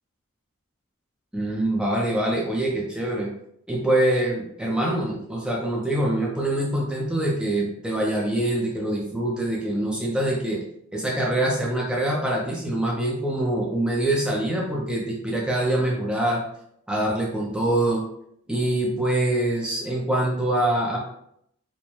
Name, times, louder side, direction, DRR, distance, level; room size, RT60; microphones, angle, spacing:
voice 1, 1.3-3.3 3.7-10.6 10.9-16.4 16.9-18.0 18.5-21.0, right 1 dB, 5° right, -3 dB, 0.5 m, -24 dB
4.3 x 2.2 x 3.0 m, 0.71 s
head